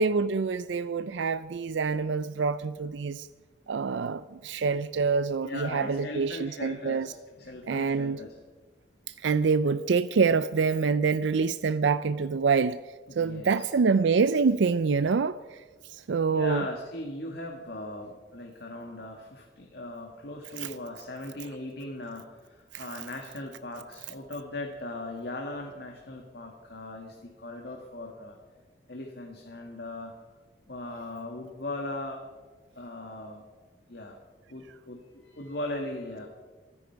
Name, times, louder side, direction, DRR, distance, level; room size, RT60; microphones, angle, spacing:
voice 1, 0.0-3.3 3.7-7.1 7.7-8.2 9.1-12.8 13.2-15.6 15.9-16.7 20.6-20.7 22.7-22.9, right 5 dB, 80° right, 0.4 m, -26 dB
voice 2, 5.4-8.3 13.1-13.7 16.3-28.4 28.9-30.1 30.7-32.3 32.8-33.4 33.9-34.2 34.5-36.3, left 2 dB, 60° left, 1.8 m, -39 dB
27.0 x 10.0 x 4.6 m
head